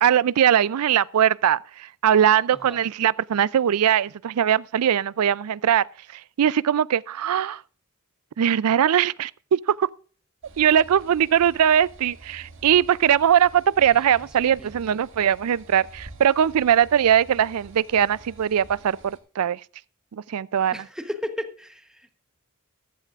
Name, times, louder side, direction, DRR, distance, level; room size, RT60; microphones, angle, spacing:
voice 1, 0.0-5.9 6.1-7.6 8.4-9.9 10.6-19.6 20.1-20.8, right 9 dB, 80° right, 0.4 m, -21 dB
sound 1, 10.4-19.2, right 2 dB, 60° right, 1.8 m, -48 dB
voice 2, 13.9-15.0 20.7-22.2, equal, 5° right, 1.0 m, -36 dB
15.0 x 11.5 x 2.4 m
head